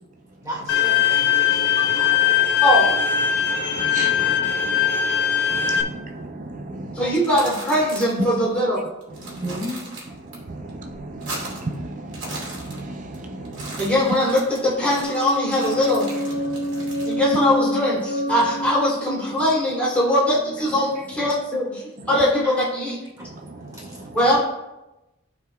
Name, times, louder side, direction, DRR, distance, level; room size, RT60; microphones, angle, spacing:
voice 1, 0.4-2.5 9.2-9.8 22.4-22.5 23.2-23.3 23.6-24.0, equal, 15° right, 1.9 m, -36 dB
Bowed string instrument, 0.7-5.8, left 9 dB, 55° left, 0.8 m, -20 dB
voice 2, 1.6-2.2 3.3-7.3 8.2-8.4 9.1-14.3 14.9-15.0 15.6-17.4 17.9-18.0 19.4-19.5 20.9-21.4 22.0-22.2 23.2-24.4, right 2 dB, 35° right, 0.5 m, -35 dB
voice 3, 2.6-3.0 6.9-8.9 9.5-9.6 13.8-16.2 17.1-23.0 24.1-24.4, left 1 dB, 5° left, 2.8 m, -21 dB
sound 1, 7.1-8.3 8.6-8.7 9.0-10.4 10.7-11.7 12.0-13.2 13.4-17.2, right 2 dB, 65° right, 2.6 m, -37 dB
sound 2, 15.0-20.8, equal, 80° left, 1.2 m, -28 dB
13.0 x 4.9 x 2.3 m
head